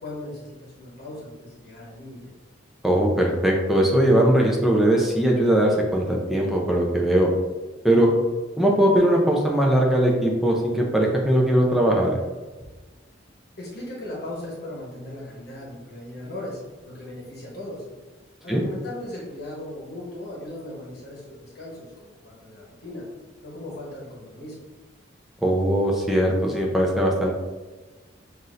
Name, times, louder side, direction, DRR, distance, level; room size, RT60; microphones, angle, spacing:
voice 1, 0.0-2.3 13.6-17.8 18.4-23.0 23.4-24.6, left 1 dB, 55° left, -4 dB, 1.1 m, -37 dB
voice 2, 2.8-7.3 7.8-8.1 8.6-12.2 18.5-18.6 25.4-27.4, right 1 dB, ahead, -2 dB, 0.6 m, -20 dB
6.0 x 2.7 x 2.5 m, 1.3 s
head